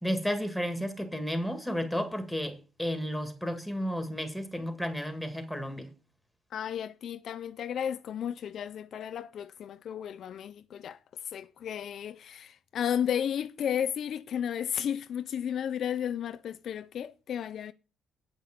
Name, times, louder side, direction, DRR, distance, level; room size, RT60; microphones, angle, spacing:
voice 1, 0.0-5.9, equal, ahead, 1.9 m, -32 dB
voice 2, 6.5-11.0 11.3-17.7, left 9 dB, 60° left, 0.4 m, -33 dB
8.7 x 5.7 x 7.6 m
cardioid pair, 120°, 0 cm